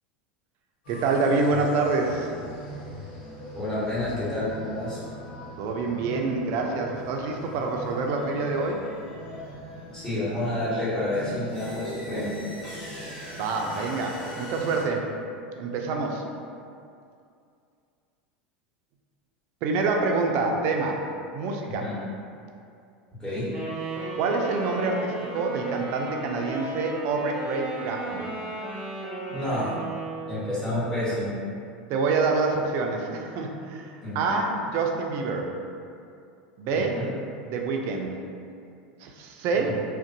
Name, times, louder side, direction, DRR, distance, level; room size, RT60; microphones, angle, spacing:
sound 1, 0.8-14.8, left 1 dB, 75° left, 0.9 m, -40 dB
voice 1, 0.9-2.3 5.6-8.8 13.3-15.1 15.5-16.2 19.6-21.0 21.3-21.9 24.2-28.3 31.9-35.5 36.6-37.0 37.4-38.1 39.0-39.7, right 3 dB, 55° right, 2 dB, 0.3 m, -27 dB
voice 2, 3.5-5.0 9.9-12.3 21.7-21.9 23.2-23.4 29.3-29.8 30.3-31.3 34.0-34.3 36.7-37.1 39.7-39.8, left 1 dB, 10° left, -12 dB, 1.2 m, -29 dB
Wind instrument woodwind instrument, 23.5-30.5, right 2 dB, 20° right, 0.7 m, -35 dB
2.5 x 2.1 x 2.6 m, 2.4 s
hypercardioid pair, 95°, 5 cm